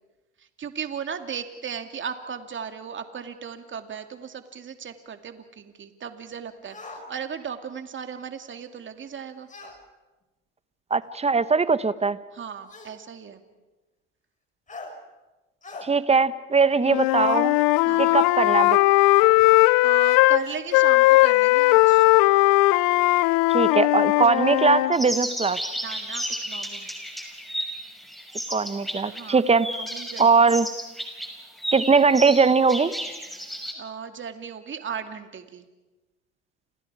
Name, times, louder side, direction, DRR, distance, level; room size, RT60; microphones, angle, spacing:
voice 1, 0.4-9.5 12.3-13.4 17.8-18.2 19.8-22.1 25.8-26.9 29.1-29.4 29.7-30.6 33.7-35.7, right 7 dB, 35° right, 7 dB, 2.4 m, -36 dB
sound 1, 6.7-7.0 9.5-9.8 11.0-11.1 12.7-13.0 14.7-14.9 15.6-15.9, left 3 dB, 20° left, 5.7 m, -40 dB
voice 2, 10.9-12.2 15.8-17.6 18.0-18.8 23.5-25.6 28.5-29.7 30.2-30.7 31.7-32.9, right 4 dB, 20° right, 14 dB, 1.2 m, -20 dB
Wind instrument woodwind instrument, 16.9-20.4 20.7-24.9, left 20 dB, 65° left, 0.8 m, -18 dB
sound 2, 24.9-29.2 29.6-33.7, equal, ahead, 6.0 m, -33 dB
29.5 x 28.0 x 4.8 m, 1.1 s
hypercardioid pair, 80°, 34 cm